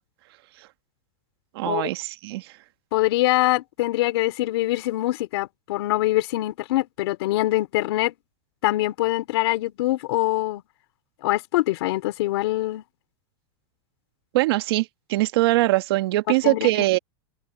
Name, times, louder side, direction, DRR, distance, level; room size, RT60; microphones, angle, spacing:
voice 1, 1.5-2.5 14.3-17.0, right 18 dB, 65° right, 1.8 m, -22 dB
voice 2, 2.9-8.1 8.6-10.6 11.2-12.8 16.4-16.7, left 17 dB, 65° left, 2.9 m, -24 dB
supercardioid pair, 150°, 14 cm